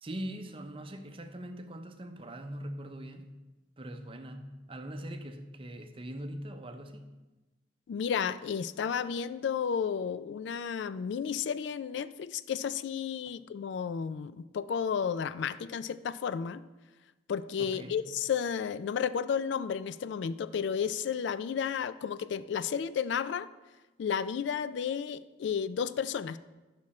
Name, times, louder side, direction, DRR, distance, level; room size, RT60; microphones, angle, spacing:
voice 1, 0.0-3.3 3.8-7.1 17.6-18.0, right 1 dB, 30° right, 0.6 m, -42 dB
voice 2, 7.9-16.6 17.3-23.5 24.0-26.4, left 7 dB, 65° left, 0.3 m, -32 dB
10.5 x 6.1 x 4.2 m
head